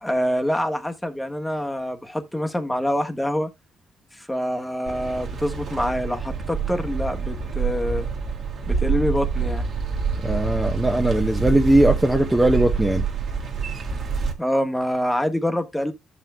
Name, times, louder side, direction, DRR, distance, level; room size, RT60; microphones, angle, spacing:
voice 1, 0.0-3.5 4.1-8.1 8.7-9.6 14.4-15.9, equal, 10° left, 1.3 m, -25 dB
sound 1, 4.9-14.3, right 5 dB, 60° right, 1.8 m, -27 dB
voice 2, 10.2-13.0, right 1 dB, 10° right, 0.9 m, -19 dB
14.5 x 5.7 x 2.2 m
cardioid pair, 90°, 0 cm